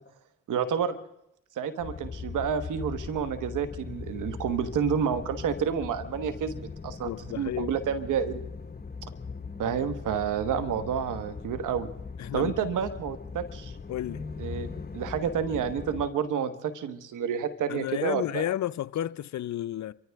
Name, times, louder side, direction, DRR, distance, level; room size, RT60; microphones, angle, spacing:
voice 1, 0.5-1.0 1.5-8.5 9.6-11.9 12.3-13.7 14.4-14.7 14.9-18.4, right 7 dB, 90° right, 1.2 m, -29 dB
sound 1, 1.8-16.1, left 5 dB, 30° left, 1.3 m, -40 dB
voice 2, 7.0-7.7 12.2-12.5 13.9-14.3 17.7-19.9, left 12 dB, 65° left, 0.5 m, -32 dB
27.0 x 14.5 x 3.5 m
supercardioid pair, 50°, 30 cm